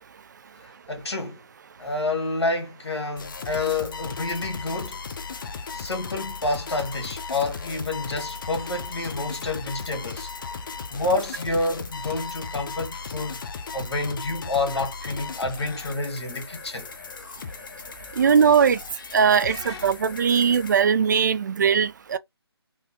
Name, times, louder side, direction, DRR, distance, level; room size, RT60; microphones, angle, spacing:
voice 1, 0.6-1.4 1.8-5.0 5.7-10.3 10.9-13.4 13.7-16.9 19.4-19.9, left 2 dB, 80° left, 1.8 m, -29 dB
sound 1, 3.2-20.8, left 5 dB, 50° left, 0.6 m, -37 dB
voice 2, 18.2-18.8 19.1-22.2, right 7 dB, 45° right, 0.4 m, -20 dB
3.7 x 2.2 x 2.6 m
figure-of-eight pair, 150°, 14 cm